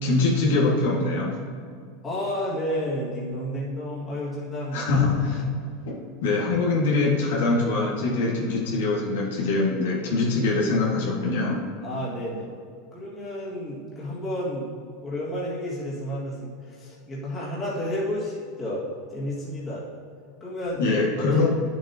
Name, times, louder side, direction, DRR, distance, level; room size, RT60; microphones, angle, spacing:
voice 1, 0.0-1.4 4.7-5.4 5.9-11.6 20.8-21.6, left 3 dB, 85° left, -4 dB, 2.0 m, -23 dB
voice 2, 2.0-4.9 5.5-5.6 11.8-12.5 12.9-14.7 15.0-19.9 20.4-20.8 21.2-21.4, equal, 15° left, -7 dB, 2.0 m, -31 dB
10.0 x 7.1 x 2.9 m, 2.2 s
supercardioid pair, 160°, 0 cm